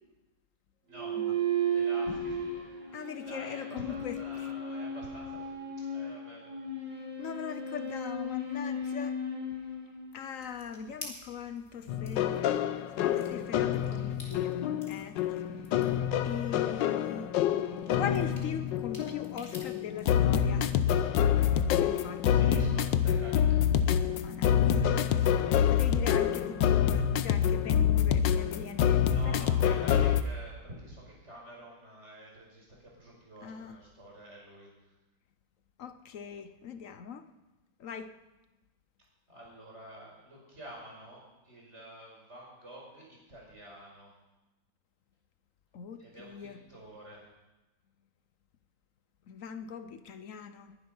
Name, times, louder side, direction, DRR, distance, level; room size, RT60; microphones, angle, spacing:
voice 1, 0.9-1.2 1.7-2.4 3.3-5.5 5.9-6.7 22.2-23.7 29.1-34.7 39.3-44.1 46.0-47.2, equal, 35° right, -2 dB, 5.7 m, -48 dB
sound 1, 0.9-10.5, right 2 dB, 65° right, 4.4 m, -35 dB
voice 2, 2.9-4.5 7.0-9.2 10.1-12.6 13.0-15.6 16.2-17.3 17.9-20.7 21.2-22.5 24.1-29.8 33.4-33.8 35.8-37.2 37.8-38.1 45.7-46.6 49.3-50.8, left 7 dB, 60° left, 10 dB, 0.9 m, -41 dB
sound 2, 10.4-20.1, left 2 dB, 35° left, 3.1 m, -52 dB
sound 3, 11.9-30.2, left 9 dB, 75° left, 1.4 m, -27 dB
21.0 x 11.5 x 5.5 m, 1.1 s
omnidirectional pair, 2.0 m